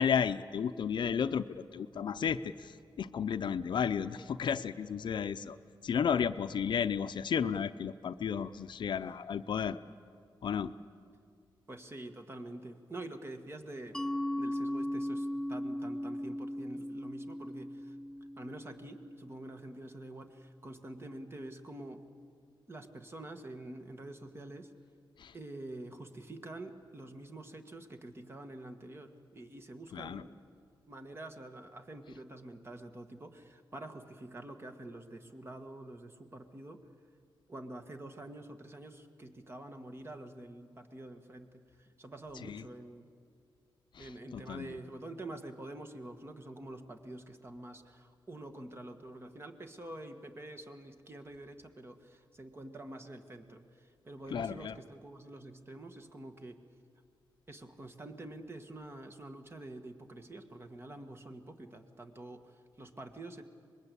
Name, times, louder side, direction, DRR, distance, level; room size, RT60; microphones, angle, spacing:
voice 1, 0.0-2.7 3.0-5.6 5.8-9.8 10.4-10.7 25.2-25.3 29.9-30.2 42.5-42.6 44.0-44.8 54.3-54.7, left 7 dB, 65° left, 12 dB, 0.7 m, -33 dB
voice 2, 11.7-14.0 14.4-17.9 18.4-22.0 22.7-24.7 25.3-30.4 30.9-36.9 37.5-43.0 44.0-56.6 57.5-63.4, right 1 dB, 30° right, 6 dB, 1.7 m, -47 dB
Mallet percussion, 13.9-19.3, left 1 dB, 5° left, 0.6 m, -37 dB
25.0 x 21.0 x 8.4 m, 2.2 s
wide cardioid pair, 105°, 8 cm